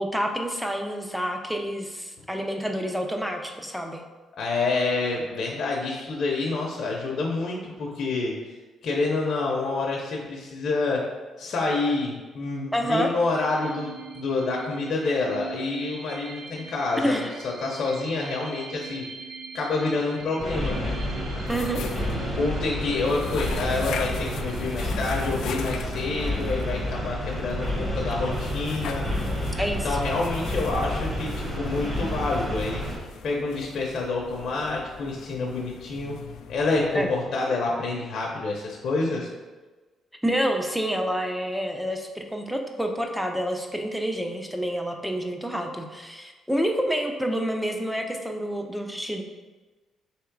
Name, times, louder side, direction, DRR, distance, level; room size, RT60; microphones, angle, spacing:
voice 1, 0.0-4.0 12.7-13.1 17.0-17.4 21.5-21.8 29.6-29.9 36.9-37.1 40.2-49.2, equal, ahead, 3 dB, 0.6 m, -28 dB
voice 2, 4.4-8.3 8.8-11.0 11.4-19.1 19.5-20.9 22.0-29.1 29.8-32.8 33.2-36.2 36.5-39.3, left 3 dB, 60° left, -2 dB, 0.7 m, -28 dB
sound 1, 12.9-26.2, right 7 dB, 70° right, 0.4 m, -43 dB
The Mines of Zarkon, 20.4-33.0, left 1 dB, 20° right, 1.3 m, -30 dB
sound 2, 21.3-37.4, left 7 dB, 80° left, 0.3 m, -42 dB
3.6 x 3.0 x 4.6 m, 1.3 s
cardioid pair, 90°, 0 cm